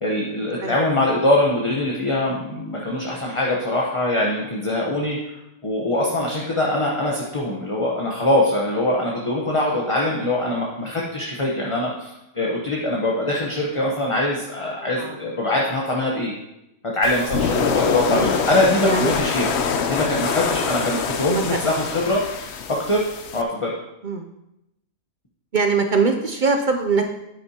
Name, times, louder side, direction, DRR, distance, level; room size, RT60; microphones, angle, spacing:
voice 1, 0.0-5.2 5.6-16.3 16.9-19.5 19.8-22.2 22.7-23.0 23.3-23.7, left 1 dB, 25° left, -3 dB, 1.0 m, -23 dB
sound 1, 17.0-23.4, left 6 dB, 60° left, 0.8 m, -25 dB
voice 2, 25.5-27.1, right 4 dB, 55° right, 4 dB, 0.5 m, -22 dB
9.9 x 8.7 x 2.9 m, 0.87 s
omnidirectional pair, 1.5 m